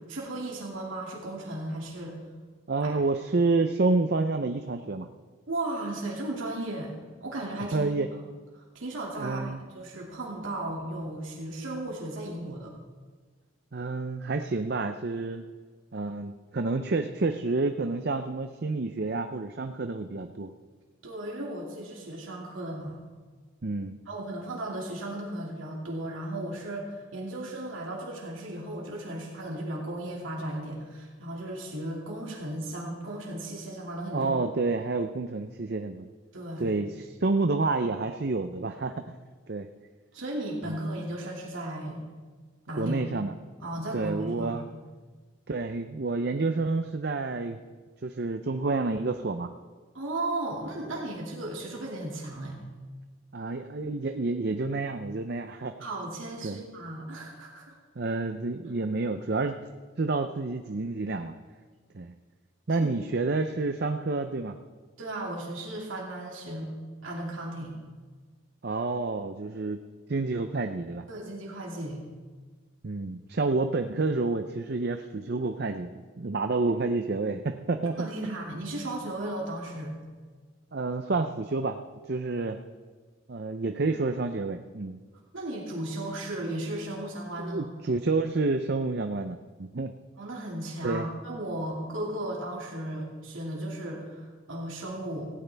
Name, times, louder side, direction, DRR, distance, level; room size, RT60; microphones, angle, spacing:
voice 1, 0.1-2.1 2.8-2.9 5.5-6.9 7.2-8.2 8.5-12.7 21.0-23.0 24.1-34.3 36.3-36.7 40.1-42.0 42.7-43.0 43.6-44.6 49.9-52.6 55.8-57.8 62.7-62.9 65.0-66.7 67.0-67.8 71.1-72.0 76.6-76.7 78.0-80.0 85.3-87.8 90.2-95.3, right 1 dB, 70° right, -2 dB, 2.4 m, -35 dB
voice 2, 2.7-5.1 7.7-8.1 9.2-9.6 13.7-15.4 15.9-20.5 23.6-24.0 34.1-36.1 36.6-38.9 39.5-39.7 40.7-40.8 42.7-43.3 43.9-44.7 45.5-47.6 48.0-49.5 53.3-55.7 56.4-56.6 58.0-59.6 60.0-61.3 61.9-62.1 62.7-64.6 68.6-69.8 70.1-71.0 72.8-78.1 80.7-82.6 83.3-85.0 87.4-89.9 90.8-91.1, right 3 dB, 50° right, 7 dB, 0.6 m, -29 dB
18.0 x 16.0 x 3.4 m, 1.5 s
head